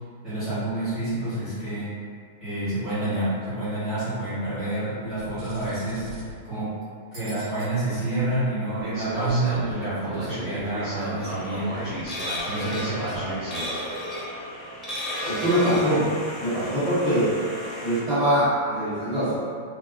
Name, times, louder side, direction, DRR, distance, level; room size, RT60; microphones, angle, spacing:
voice 1, 0.2-1.9 2.4-6.1 6.4-6.7 7.1-11.9 12.4-13.4, right 2 dB, 15° right, -18 dB, 1.3 m, -28 dB
sound 1, 5.1-6.4 7.1-7.7 8.7-13.8, right 1 dB, 35° right, 1.1 m, -35 dB
sound 2, 11.3-18.0, left 1 dB, 20° left, 0.4 m, -34 dB
voice 2, 15.3-16.1 16.4-17.3 17.8-19.3, equal, ahead, -20 dB, 1.5 m, -23 dB
2.7 x 2.4 x 2.3 m, 2.1 s
supercardioid pair, 170°, 0 cm